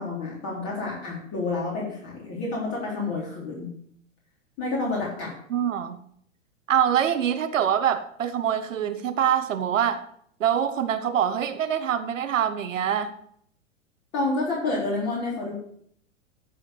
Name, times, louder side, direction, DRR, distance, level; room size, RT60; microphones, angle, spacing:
voice 1, 0.0-3.7 4.6-5.3 14.1-15.6, left 3 dB, 40° left, 3.9 m, -29 dB
voice 2, 5.5-6.0 6.7-10.0 10.4-13.1, right 9 dB, 75° right, 0.9 m, -24 dB
14.0 x 4.8 x 6.6 m
figure-of-eight pair, 100°, 39 cm